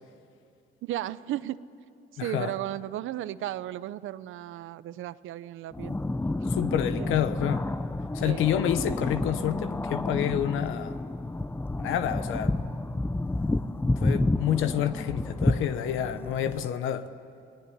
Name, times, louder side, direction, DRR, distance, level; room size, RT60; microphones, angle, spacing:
voice 1, 0.8-1.6 2.1-6.0 7.0-7.2 8.2-8.4, right 13 dB, 85° right, 0.7 m, -35 dB
voice 2, 2.2-2.5 6.5-7.7 8.1-11.0 11.8-12.6 14.0-17.1, left 10 dB, 85° left, 1.0 m, -28 dB
sound 1, 5.7-16.7, left 2 dB, 10° left, 0.7 m, -30 dB
28.0 x 18.5 x 10.0 m
cardioid pair, 90°, 20 cm